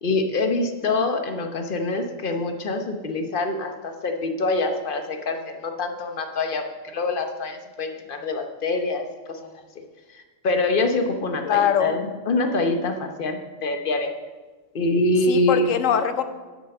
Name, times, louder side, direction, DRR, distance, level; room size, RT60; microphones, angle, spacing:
voice 1, 0.0-9.5 10.1-14.1 14.7-15.7, left 2 dB, 45° left, 5 dB, 1.0 m, -25 dB
voice 2, 11.4-11.9 15.3-16.2, left 9 dB, 75° left, 10 dB, 1.1 m, -22 dB
8.3 x 7.1 x 6.5 m, 1.3 s
omnidirectional pair, 1.4 m